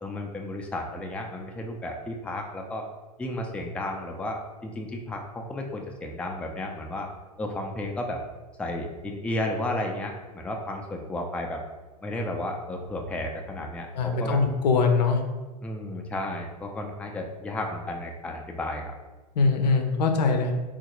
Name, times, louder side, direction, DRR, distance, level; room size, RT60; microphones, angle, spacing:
voice 1, 0.0-2.8 3.2-7.1 7.4-8.2 8.6-11.6 12.0-14.4 15.6-18.9, left 1 dB, 5° left, 1 dB, 0.4 m, -33 dB
voice 2, 13.9-15.2 19.4-20.5, left 4 dB, 80° left, 5 dB, 0.6 m, -22 dB
3.7 x 2.5 x 2.9 m, 1.2 s
hypercardioid pair, 100°, 21 cm